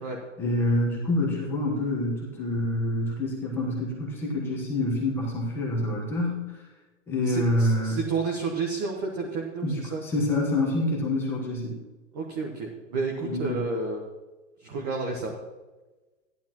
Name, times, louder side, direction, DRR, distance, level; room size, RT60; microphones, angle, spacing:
voice 1, 0.4-6.4 7.1-8.0 9.6-11.8 13.2-13.6, left 1 dB, 5° left, -3 dB, 1.1 m, -27 dB
voice 2, 7.3-10.0 10.4-10.5 12.1-14.0 14.6-15.3, right 4 dB, 25° right, -1 dB, 1.0 m, -31 dB
14.5 x 11.0 x 3.0 m, 1.2 s
hypercardioid pair, 175°, 39 cm